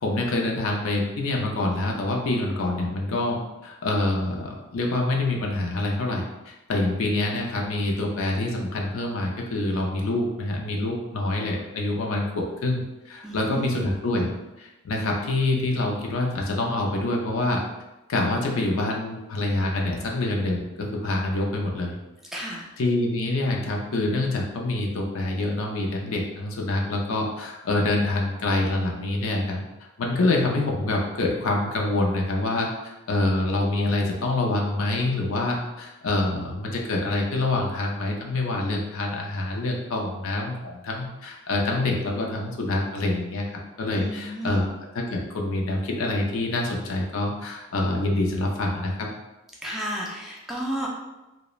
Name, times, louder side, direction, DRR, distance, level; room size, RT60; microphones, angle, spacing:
voice 1, 0.0-14.3 14.6-17.6 18.1-22.0 22.8-29.6 30.0-44.7 44.9-49.1, left 2 dB, 75° left, 0 dB, 0.5 m, -26 dB
voice 2, 13.2-13.8 22.3-22.6 43.9-44.6 49.6-50.9, right 1 dB, ahead, -4 dB, 0.3 m, -32 dB
3.0 x 2.0 x 2.3 m, 1.0 s
head